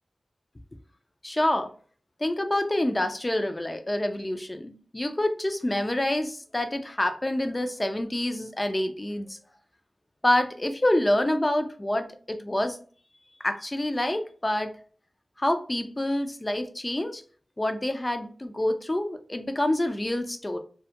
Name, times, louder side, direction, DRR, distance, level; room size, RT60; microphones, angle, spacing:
voice 1, 1.2-1.7 2.2-9.4 10.2-12.8 13.4-14.7 15.4-17.2 17.6-20.6, left 1 dB, 30° left, 0.5 m, -27 dB
2.2 x 2.1 x 2.8 m
cardioid pair, 45°, 0 cm